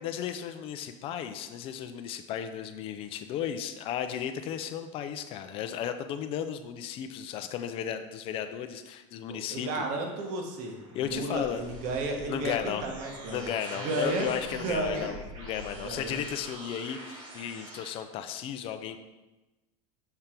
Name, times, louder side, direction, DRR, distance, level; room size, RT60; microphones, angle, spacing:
voice 1, 0.0-9.8 10.9-11.6 12.3-12.8 13.3-19.0, left 9 dB, 35° left, 9 dB, 0.4 m, -35 dB
voice 2, 9.5-13.5 13.8-15.1 15.8-16.2, right 2 dB, 50° right, 2 dB, 1.2 m, -33 dB
sound 1, 10.3-17.9, right 1 dB, 80° right, 1.7 m, -44 dB
6.7 x 3.7 x 4.4 m, 1.1 s
supercardioid pair, 160°, 16 cm